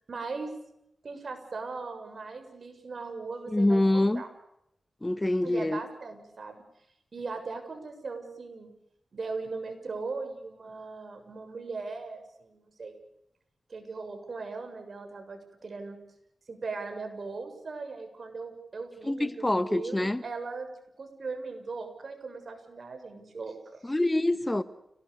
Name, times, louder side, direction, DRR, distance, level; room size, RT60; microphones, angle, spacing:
voice 1, 0.1-0.6 1.0-4.3 5.4-6.6 7.1-8.7 9.1-12.9 13.7-16.0 16.5-20.7 21.0-23.8, right 4 dB, 65° right, 6 dB, 7.2 m, -39 dB
voice 2, 3.5-4.2 5.0-5.8 19.0-20.2 23.8-24.6, left 1 dB, 20° left, 13 dB, 1.5 m, -25 dB
29.5 x 19.5 x 6.8 m, 0.79 s
cardioid pair, 50°, 0 cm